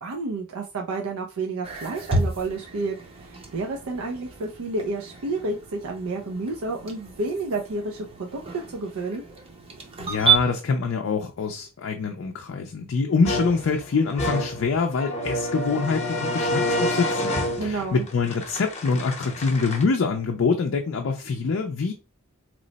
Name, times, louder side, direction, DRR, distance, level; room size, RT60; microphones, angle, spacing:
voice 1, 0.0-8.4 8.7-9.2 17.6-18.1, right 3 dB, 90° right, 0.5 m, -30 dB
sound 1, 1.6-10.4, right 5 dB, 25° right, 0.6 m, -30 dB
voice 2, 10.0-21.9, left 4 dB, 65° left, 0.4 m, -25 dB
sound 2, 13.2-19.8, left 1 dB, 35° left, 0.7 m, -28 dB
3.0 x 2.0 x 3.9 m
head